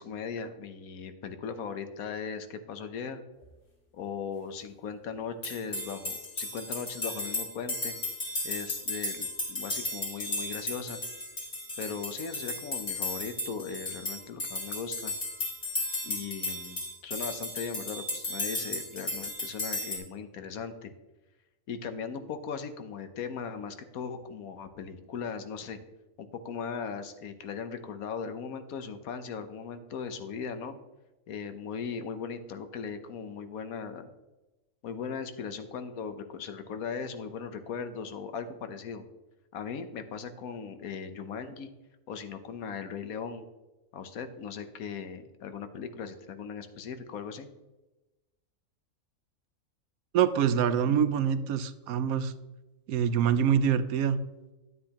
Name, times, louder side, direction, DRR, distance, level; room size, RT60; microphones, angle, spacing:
voice 1, 0.0-3.2 3.9-8.0 8.4-11.0 11.8-15.1 16.0-20.9 21.7-25.8 26.2-30.8 31.3-34.1 34.8-39.0 39.5-41.7 42.1-43.4 43.9-47.5, left 6 dB, 75° left, 9 dB, 1.3 m, -38 dB
sound 1, 5.4-20.0, left 2 dB, 35° left, 2.1 m, -35 dB
voice 2, 50.1-52.3 52.9-54.2, right 8 dB, 80° right, 13 dB, 1.1 m, -25 dB
9.9 x 9.4 x 2.9 m, 1.1 s
omnidirectional pair, 1.5 m